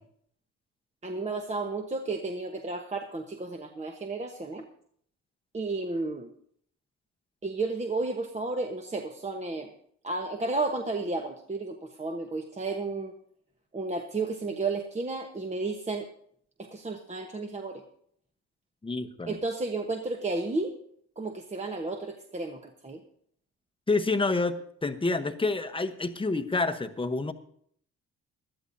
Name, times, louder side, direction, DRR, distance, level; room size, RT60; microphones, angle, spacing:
voice 1, 1.0-4.6 5.5-6.3 7.4-9.7 10.0-13.1 13.7-16.1 16.6-17.8 19.3-20.7 21.2-23.0, right 3 dB, 25° right, 3 dB, 1.1 m, -32 dB
voice 2, 18.8-19.4 23.9-27.3, left 3 dB, 15° left, 9 dB, 1.0 m, -28 dB
20.5 x 13.0 x 2.7 m, 0.64 s
cardioid pair, 90°, 30 cm